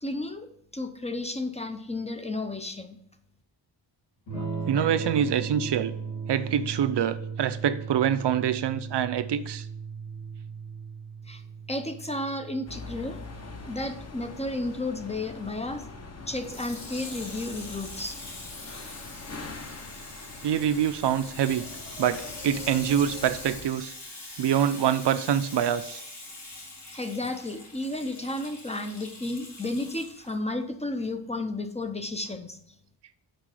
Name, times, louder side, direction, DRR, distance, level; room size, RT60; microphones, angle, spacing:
voice 1, 0.0-3.0 11.3-11.4 11.7-13.2 13.7-15.8 16.3-18.2 26.9-32.6, left 2 dB, 15° left, 8 dB, 0.5 m, -33 dB
Electric guitar / Strum, 4.3-14.0, right 5 dB, 90° left, 2.5 m, -37 dB
voice 2, 4.7-5.9 6.3-9.7 20.4-21.6 22.0-23.9 24.4-26.0, right 9 dB, 65° right, 12 dB, 0.6 m, -25 dB
sound 1, 12.7-23.7, left 4 dB, 35° left, 0.8 m, -43 dB
Water tap faucet / Sink (filling or washing), 16.3-30.3 31.0-31.1, left 2 dB, 65° left, 2.3 m, -43 dB
6.0 x 5.3 x 4.8 m, 0.72 s
wide cardioid pair, 145°, 46 cm